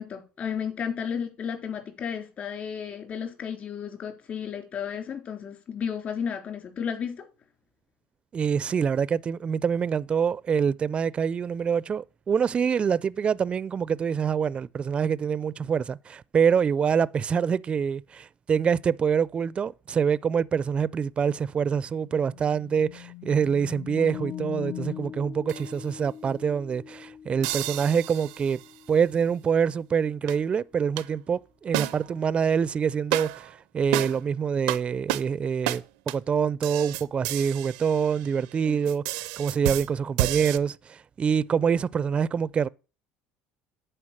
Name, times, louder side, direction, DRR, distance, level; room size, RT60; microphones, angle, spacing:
voice 1, 0.0-7.3 38.7-38.8, left 7 dB, 45° left, 3.5 m, -33 dB
voice 2, 8.3-28.6 28.9-42.7, right 7 dB, 30° right, 0.4 m, -25 dB
sound 1, 21.5-25.3, left 23 dB, 70° left, 1.0 m, -41 dB
Piano, 24.0-30.7, left 7 dB, 30° left, 0.6 m, -44 dB
sound 2, 25.5-25.8 27.4-28.7 30.3-30.4 31.0-31.1 31.7-32.3 33.1-33.5 33.9-34.3 34.7-34.8 35.1-35.3 35.7-35.8 36.1-36.2 36.6-38.5 38.8-40.6, right 16 dB, 85° right, 0.5 m, -31 dB
10.0 x 4.5 x 7.3 m
supercardioid pair, 100°, 4 cm